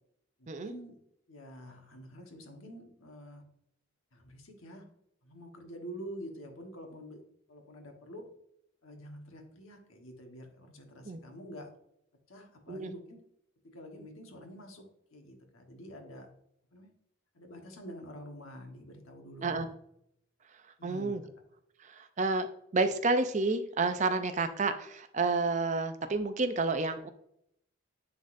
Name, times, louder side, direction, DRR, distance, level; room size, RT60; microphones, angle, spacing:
voice 1, 0.4-1.0 1.3-3.4 4.1-4.8 5.2-7.2 7.5-8.2 8.8-11.7 12.3-13.2 13.7-14.8 15.1-16.3 16.7-16.9 17.3-19.7 20.8-21.1, equal, 75° left, 3 dB, 1.3 m, -47 dB
voice 2, 20.8-21.2 21.8-22.5 22.7-27.1, right 3 dB, 35° right, 9 dB, 0.4 m, -30 dB
9.7 x 4.0 x 2.6 m, 0.73 s
head